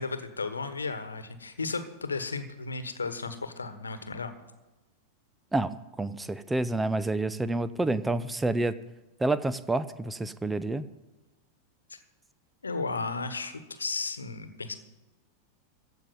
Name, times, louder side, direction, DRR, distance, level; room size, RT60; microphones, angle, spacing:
voice 1, 0.0-4.3 11.9-12.0 12.6-14.7, left 4 dB, 75° left, 10 dB, 1.3 m, -34 dB
voice 2, 5.5-8.8 9.2-10.9, right 2 dB, 10° right, 15 dB, 0.7 m, -28 dB
15.5 x 5.7 x 9.3 m, 1.1 s
figure-of-eight pair, 90°, 0 cm